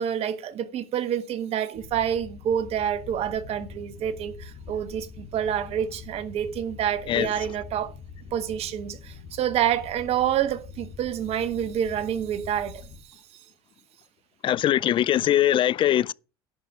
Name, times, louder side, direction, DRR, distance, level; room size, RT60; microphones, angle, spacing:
voice 1, 0.0-7.9 8.3-12.9, right 9 dB, 55° right, 1.3 m, -28 dB
sound 1, 1.7-13.0, left 5 dB, 65° left, 2.5 m, -44 dB
voice 2, 14.4-16.1, left 12 dB, 45° left, 0.4 m, -21 dB
10.5 x 5.2 x 7.1 m
hypercardioid pair, 75°, 12 cm